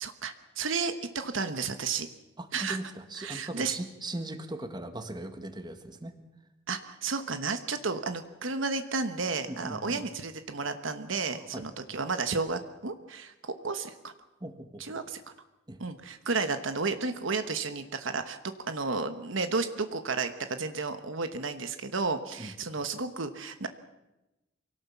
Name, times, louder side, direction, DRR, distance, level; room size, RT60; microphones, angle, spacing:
voice 1, 0.0-2.1 2.5-2.8 3.2-3.8 6.7-14.1 14.8-15.2 15.8-18.4 18.7-23.7, right 4 dB, 70° right, 9 dB, 1.2 m, -32 dB
voice 2, 2.4-6.1 9.4-10.0 11.3-11.6 14.4-14.8 15.7-15.8 22.4-22.5, right 1 dB, 20° right, 8 dB, 1.7 m, -39 dB
24.5 x 18.0 x 7.2 m, 0.98 s
head